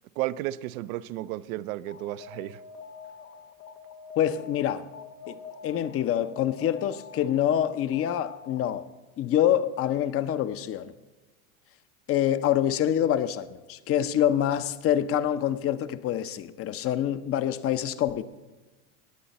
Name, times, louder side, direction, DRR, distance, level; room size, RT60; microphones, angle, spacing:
voice 1, 0.2-2.6, right 15 dB, 70° right, 0.6 m, -33 dB
Alarm, 1.9-8.9, left 5 dB, 85° left, 1.0 m, -46 dB
voice 2, 4.2-4.9 5.3-8.9 9.2-10.9 12.1-18.2, left 10 dB, 30° left, 0.7 m, -26 dB
19.0 x 8.5 x 4.1 m
supercardioid pair, 105°, 44 cm